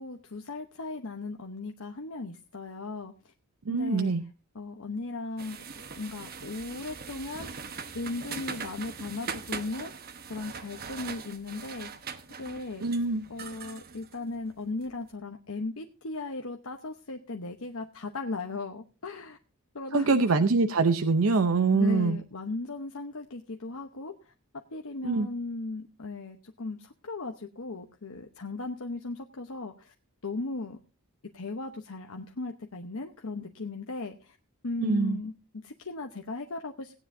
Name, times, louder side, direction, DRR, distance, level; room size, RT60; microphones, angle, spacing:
voice 1, 0.0-3.1 3.7-4.1 4.5-5.6 6.0-7.5 7.9-11.9 12.4-13.0 13.3-19.4 19.7-20.4 21.7-24.1 24.7-29.9 30.2-30.8 31.3-34.4 34.6-37.1, left 3 dB, 70° left, 3 dB, 1.0 m, -37 dB
voice 2, 3.7-4.2 12.8-13.2 19.9-22.2 25.0-25.3 34.8-35.2, right 4 dB, 70° right, 7 dB, 0.7 m, -24 dB
sound 1, 5.4-14.9, right 5 dB, 45° right, 1.0 m, -41 dB
17.5 x 10.0 x 2.7 m, 0.31 s
head